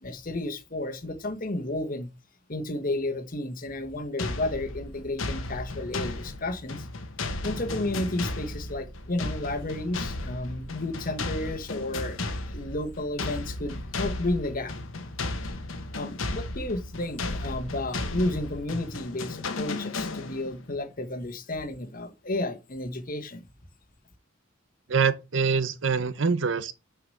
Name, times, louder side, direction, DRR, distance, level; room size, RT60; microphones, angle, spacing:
voice 1, 0.0-2.1 2.5-6.9 7.4-14.7 15.9-23.4, left 2 dB, 45° left, 1.2 m, -32 dB
sound 1, 4.2-20.6, left 2 dB, 85° left, 1.2 m, -34 dB
voice 2, 24.9-26.7, right 5 dB, 65° right, 0.7 m, -25 dB
6.3 x 4.9 x 6.3 m
head